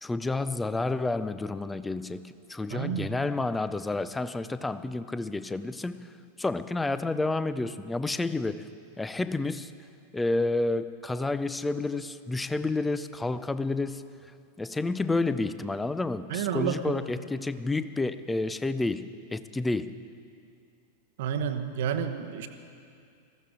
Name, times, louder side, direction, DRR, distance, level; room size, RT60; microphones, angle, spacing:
voice 1, 0.0-8.7 9.0-9.7 10.1-14.3 14.6-20.0, left 2 dB, 10° left, 14 dB, 0.5 m, -30 dB
voice 2, 2.7-3.1 16.3-16.9 21.2-22.5, right 8 dB, 55° right, 8 dB, 0.9 m, -30 dB
20.0 x 15.0 x 3.8 m, 2.4 s
figure-of-eight pair, 90°, 0 cm